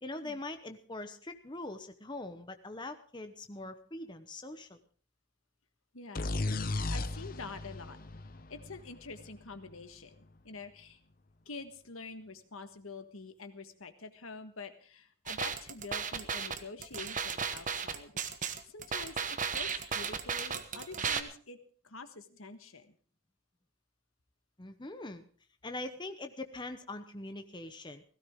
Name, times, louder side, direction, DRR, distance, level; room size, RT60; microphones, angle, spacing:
voice 1, 0.0-4.8 24.6-25.2 25.6-28.0, left 2 dB, 20° left, 8 dB, 0.9 m, -42 dB
voice 2, 5.9-6.3 6.6-8.0 8.5-11.0 11.4-18.2 18.7-21.6 21.8-22.9, left 3 dB, 90° left, 8 dB, 1.5 m, -47 dB
sound 1, 6.1-9.8, left 2 dB, 45° left, 0.8 m, -36 dB
sound 2, 15.3-21.2, right 6 dB, 40° right, 1.1 m, -35 dB
17.0 x 16.0 x 3.7 m, 0.43 s
head